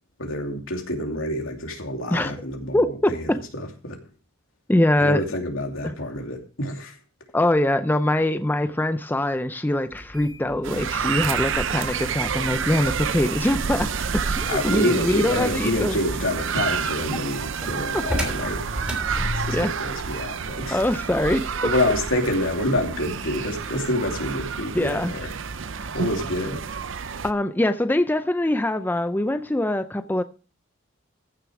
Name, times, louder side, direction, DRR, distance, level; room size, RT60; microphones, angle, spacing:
voice 1, 0.2-2.8 3.1-4.0 5.0-6.9 14.5-18.6 19.3-20.8 21.6-25.3 25.9-26.6, left 1 dB, 90° left, 2.7 m, -27 dB
voice 2, 2.7-3.4 4.7-5.2 5.8-5.9 7.3-16.0 17.9-18.0 19.5-19.7 20.7-21.5 24.7-25.1 25.8-26.0 27.2-30.2, left 1 dB, 10° left, 0.4 m, -23 dB
sound 1, 9.9-19.8, equal, 5° right, 3.1 m, -35 dB
sound 2, 10.6-27.3, right 6 dB, 65° right, 0.6 m, -29 dB
15.0 x 6.6 x 4.8 m
head